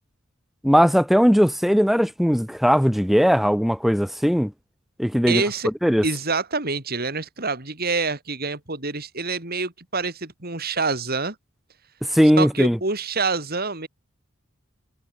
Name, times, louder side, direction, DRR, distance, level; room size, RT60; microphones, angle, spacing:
voice 1, 0.6-4.5 5.0-5.4 5.8-6.0 12.1-12.8, equal, ahead, 2.9 m, -18 dB
voice 2, 5.3-5.7 6.0-11.4 12.4-13.9, right 4 dB, 50° right, 4.3 m, -26 dB
head